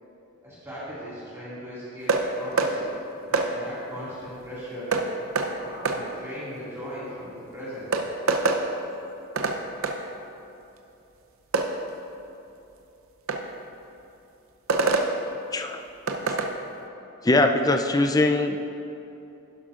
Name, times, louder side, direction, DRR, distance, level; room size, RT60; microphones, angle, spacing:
voice 1, 0.4-2.9 3.3-5.0 5.5-7.9, equal, 10° right, -10 dB, 2.1 m, -38 dB
sound 1, 2.1-2.2 2.6-2.7 3.3-3.5 4.9-5.1 5.4-5.5 5.9-6.0 7.4-7.5 7.9-8.6 9.4-9.6 9.8-10.0 11.5-11.7 13.3-13.4 14.7-15.1 16.1-16.5, right 3 dB, 70° right, 0.7 m, -23 dB
voice 2, 17.2-18.6, left 2 dB, 15° left, 6 dB, 0.3 m, -21 dB
11.5 x 10.5 x 2.5 m, 2.8 s
head